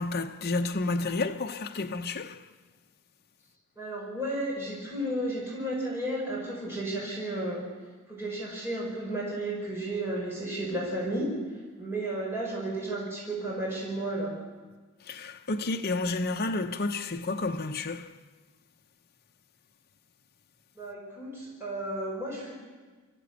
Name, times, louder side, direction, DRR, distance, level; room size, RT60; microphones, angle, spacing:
voice 1, 0.0-2.5 15.0-18.2, left 3 dB, 45° left, 0.7 m, -31 dB
voice 2, 3.8-7.6 8.1-11.3 11.8-14.3 20.8-22.5, right 1 dB, 10° right, 4.9 m, -33 dB
25.0 x 14.5 x 8.2 m
head